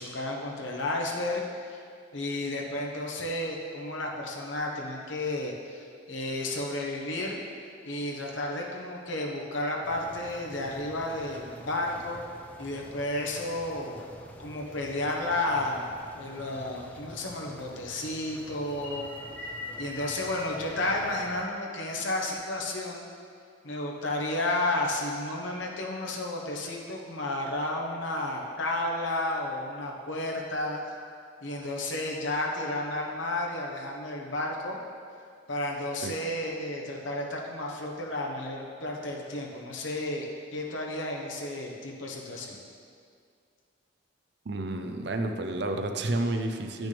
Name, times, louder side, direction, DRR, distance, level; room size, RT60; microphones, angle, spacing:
voice 1, 0.0-1.8 2.1-7.4 7.8-12.2 12.6-14.0 14.4-19.1 19.8-23.1 23.6-30.8 31.4-34.8 35.5-40.2 40.5-42.6, left 1 dB, 75° left, -1 dB, 1.1 m, -32 dB
sound 1, 9.8-21.5, equal, 10° left, 0.4 m, -48 dB
sound 2, 18.6-23.2, left 2 dB, 50° left, 2.2 m, -44 dB
voice 2, 44.4-46.9, right 2 dB, 60° right, 6 dB, 0.6 m, -30 dB
10.5 x 6.2 x 3.4 m, 2.2 s
head